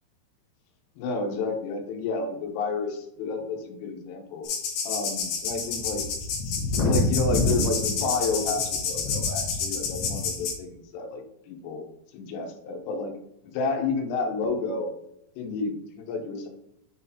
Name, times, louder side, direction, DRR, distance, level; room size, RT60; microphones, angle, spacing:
voice 1, 1.0-4.5 4.8-6.0 6.9-11.8 12.1-13.1 13.4-14.9 15.4-16.5, left 3 dB, 90° left, 4 dB, 3.5 m, -30 dB
sound 1, 4.5-10.5, left 3 dB, 65° left, 2.7 m, -27 dB
9.3 x 4.0 x 2.8 m, 0.79 s
omnidirectional pair, 5.6 m